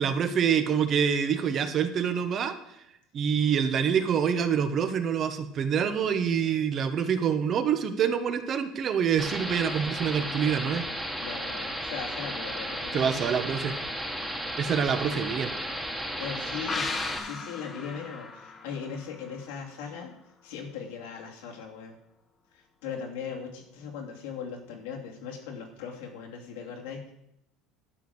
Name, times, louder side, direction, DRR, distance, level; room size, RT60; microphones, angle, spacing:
voice 1, 0.0-2.5 3.1-10.9 12.9-13.7 14.6-15.5, right 7 dB, 40° right, 9 dB, 1.2 m, -26 dB
sound 1, 9.2-17.2, equal, ahead, 1.6 m, -34 dB
voice 2, 11.2-13.2 16.2-16.9 17.2-20.1 20.4-21.9 22.5-27.1, left 6 dB, 85° left, 0 dB, 2.7 m, -39 dB
sound 2, 16.7-20.1 20.4-20.5, left 4 dB, 25° left, 1.2 m, -37 dB
11.5 x 5.1 x 8.0 m, 0.80 s
supercardioid pair, 120°, 0 cm